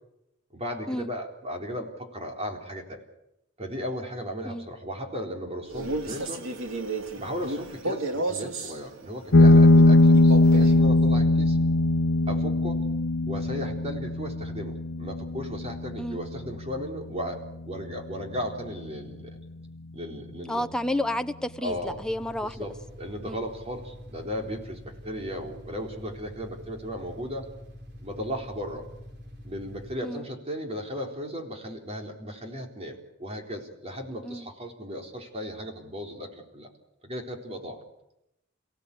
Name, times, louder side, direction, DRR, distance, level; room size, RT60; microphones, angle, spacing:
voice 1, 0.5-3.0 3.6-6.4 7.2-11.6 12.3-12.8 13.2-19.4 19.9-20.7 21.6-22.0 22.4-27.4 28.0-28.9 29.4-36.7 37.0-37.8, equal, 30° right, 2 dB, 3.9 m, -36 dB
Male speech man speaking, 5.7-8.8 10.1-10.8, right 2 dB, 85° right, 2.5 m, -32 dB
sound 1, 9.3-18.3, left 2 dB, 75° left, 0.9 m, -21 dB
voice 2, 20.5-22.7 23.3-23.4 30.0-30.3 34.2-34.5, left 1 dB, 5° left, 8 dB, 0.9 m, -31 dB
sound 2, 21.7-30.0, equal, 60° right, 3.4 m, -45 dB
29.0 x 16.5 x 8.5 m, 0.86 s
head